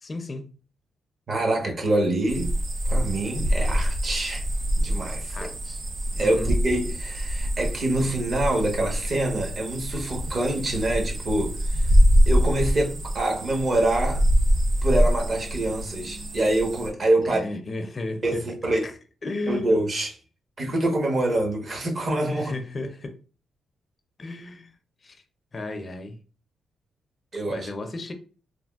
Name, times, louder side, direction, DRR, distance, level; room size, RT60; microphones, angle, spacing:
voice 1, 0.0-0.5 5.3-5.8 6.2-6.6 17.3-18.9 19.2-19.8 22.3-23.2 24.2-24.7 25.0-25.2 25.5-26.2 27.5-28.1, left 2 dB, 35° left, 0.4 m, -34 dB
voice 2, 1.3-2.5 2.9-4.4 4.8-5.5 6.2-11.9 12.3-14.2 14.8-17.4 18.2-18.8 19.5-20.1 20.6-22.5 27.3-27.7, right 1 dB, 45° right, 1.0 m, -25 dB
sound 1, 2.3-16.9, equal, 65° right, 0.5 m, -24 dB
3.3 x 2.4 x 2.3 m
cardioid pair, 95°, 0 cm